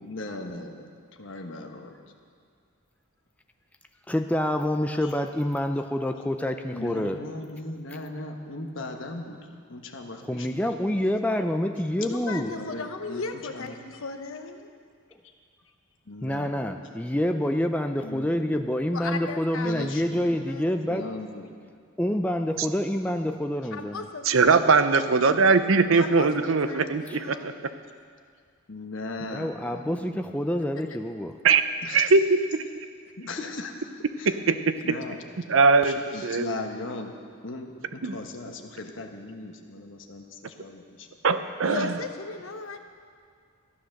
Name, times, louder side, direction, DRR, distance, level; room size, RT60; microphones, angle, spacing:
voice 1, 0.0-0.9 1.2-1.9 5.0-5.1 6.7-9.4 9.7-10.5 12.5-14.0 16.1-16.5 18.0-18.3 19.6-20.3 20.9-21.5 25.9-26.0 26.4-26.5 28.7-30.2 31.8-32.0 33.2-33.9 34.2-34.4 34.8-35.2 35.8-37.1 37.4-41.1, left 2 dB, 65° left, 4 dB, 1.2 m, -38 dB
voice 2, 4.1-7.2 10.3-12.5 16.2-21.0 22.0-24.0 29.2-31.3, left 1 dB, 5° left, 5 dB, 0.5 m, -27 dB
voice 3, 12.0-14.7 18.9-19.9 20.5-20.8 23.7-24.5 26.0-27.7 41.6-42.8, left 4 dB, 80° left, 6 dB, 1.0 m, -36 dB
voice 4, 24.3-27.5 31.4-31.6 31.9-32.6 34.3-35.0 35.5-36.0 36.2-36.5 38.0-38.2 41.2-42.0, right 4 dB, 70° right, 11 dB, 0.6 m, -21 dB
14.0 x 10.0 x 6.5 m, 2.1 s
head